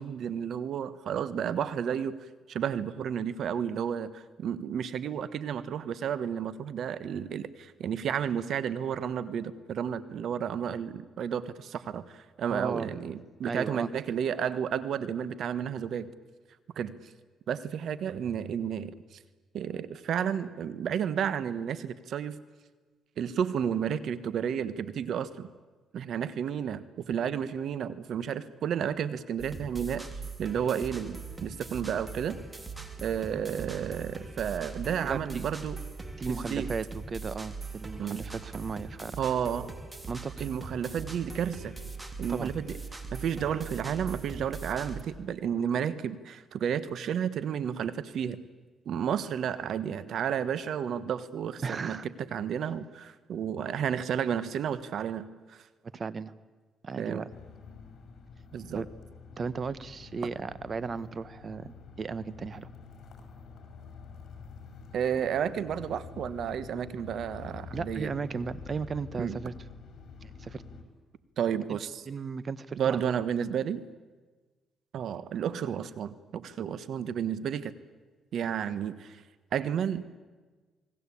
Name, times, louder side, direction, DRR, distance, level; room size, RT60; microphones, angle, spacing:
voice 1, 0.0-2.1 2.5-16.1 16.7-17.0 17.5-19.2 19.5-22.4 23.2-25.5 25.9-30.1 30.4-32.4 33.0-35.8 36.3-36.7 38.0-38.2 39.2-39.7 40.4-41.8 42.2-48.4 48.8-55.6 57.0-57.2 58.5-58.8 64.9-68.1 69.2-69.4 71.4-72.0 72.8-73.8 74.9-77.7 78.3-79.2 79.5-80.2, right 8 dB, 65° right, 15 dB, 1.3 m, -32 dB
voice 2, 12.5-12.9 13.5-13.9 35.0-35.4 36.2-39.2 40.1-40.5 42.3-42.5 51.6-52.1 55.8-56.3 56.8-57.3 58.7-58.9 59.4-62.7 67.7-69.5 70.2-70.6 71.7-71.8 72.1-73.1, right 5 dB, 40° right, 17 dB, 1.1 m, -35 dB
sound 1, 29.4-45.0, right 4 dB, 15° right, 3.2 m, -41 dB
sound 2, 57.3-70.8, left 5 dB, 60° left, 5.5 m, -47 dB
29.0 x 20.5 x 8.6 m, 1.3 s
cardioid pair, 90°, 0 cm